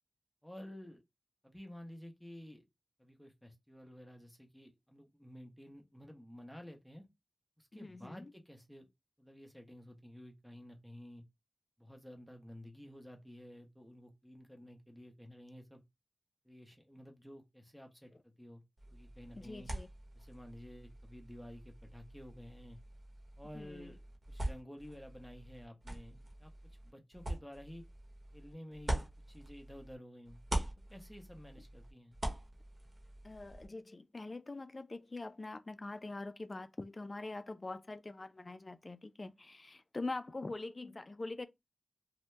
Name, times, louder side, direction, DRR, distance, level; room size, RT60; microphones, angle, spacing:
voice 1, 0.4-1.0 1.4-2.6 3.0-7.1 7.6-8.9 9.2-11.2 11.8-15.8 16.4-18.6 18.9-19.7 20.1-22.8 23.4-24.0 24.3-26.5 26.8-27.8 28.3-30.4 30.9-32.2, equal, ahead, 0.7 m, -52 dB
voice 2, 7.7-8.3 19.3-19.9 23.5-23.9 33.2-41.5, left 2 dB, 40° left, 0.3 m, -44 dB
sound 1, 18.8-30.0 30.3-33.7, right 1 dB, 45° right, 1.0 m, -43 dB
2.7 x 2.1 x 3.2 m
wide cardioid pair, 60°, 0 cm